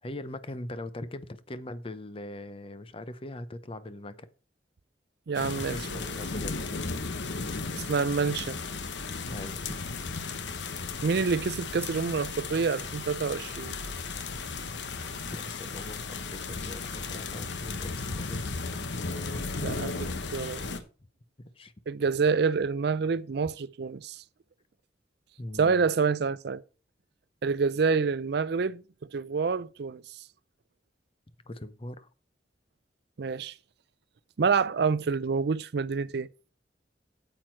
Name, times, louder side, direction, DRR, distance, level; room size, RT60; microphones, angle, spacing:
voice 1, 0.0-4.3 5.4-6.8 9.3-9.8 15.2-18.5 21.4-21.7 25.4-25.9 31.5-32.1, left 1 dB, 30° left, 0.7 m, -41 dB
sound 1, 5.3-20.8, left 4 dB, 85° left, 1.1 m, -35 dB
voice 2, 5.3-6.0 7.7-8.6 11.0-13.8 19.6-20.6 21.9-24.2 25.6-26.6 27.4-30.2 33.2-33.5 34.4-36.3, right 5 dB, 65° right, 0.5 m, -27 dB
8.9 x 7.8 x 4.5 m
head